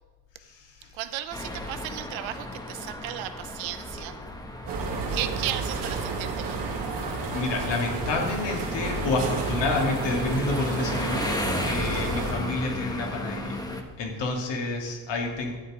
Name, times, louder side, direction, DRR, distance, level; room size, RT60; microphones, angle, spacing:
voice 1, 0.4-0.9 7.3-13.7 14.0-15.6, left 3 dB, 65° left, 0 dB, 2.8 m, -29 dB
voice 2, 0.9-4.2 5.1-6.8, right 13 dB, 80° right, 12 dB, 0.9 m, -35 dB
sound 1, 1.3-13.8, left 2 dB, 10° left, 1.3 m, -34 dB
sound 2, 4.7-12.3, right 4 dB, 65° right, 2.2 m, -31 dB
12.0 x 7.5 x 5.1 m, 1.3 s
cardioid pair, 95°, 45 cm